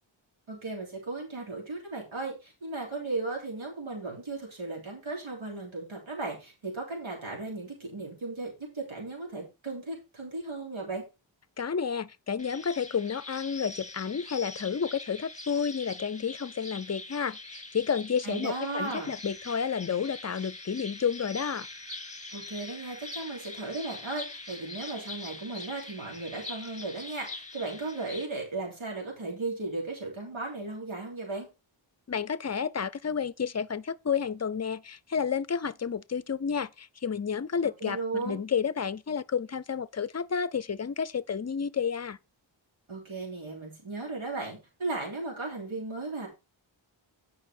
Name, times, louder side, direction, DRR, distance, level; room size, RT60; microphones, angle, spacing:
voice 1, 0.5-11.0 18.2-19.1 22.3-31.5 37.8-38.4 42.9-46.3, right 3 dB, 85° right, 3.3 m, -36 dB
voice 2, 11.6-21.7 32.1-42.2, left 6 dB, 35° left, 0.6 m, -31 dB
sound 1, 12.4-28.2, left 2 dB, 15° left, 2.0 m, -43 dB
9.8 x 5.6 x 4.4 m
wide cardioid pair, 65°, 46 cm